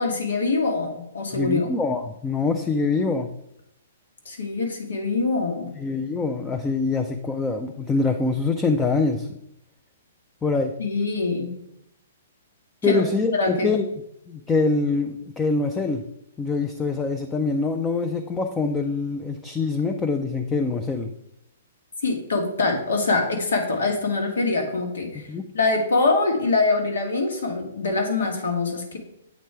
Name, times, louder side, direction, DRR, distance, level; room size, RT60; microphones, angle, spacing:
voice 1, 0.0-1.7 4.2-5.7 10.8-11.5 12.8-13.1 13.3-13.7 22.0-25.3 25.5-29.0, left 3 dB, 85° left, 3 dB, 1.5 m, -24 dB
voice 2, 1.3-3.3 5.7-9.3 10.4-10.7 12.8-13.9 14.3-16.0 16.4-21.1 25.3-25.4, left 3 dB, 15° left, 5 dB, 0.4 m, -24 dB
8.1 x 3.1 x 4.7 m, 0.79 s
hypercardioid pair, 140°, 0 cm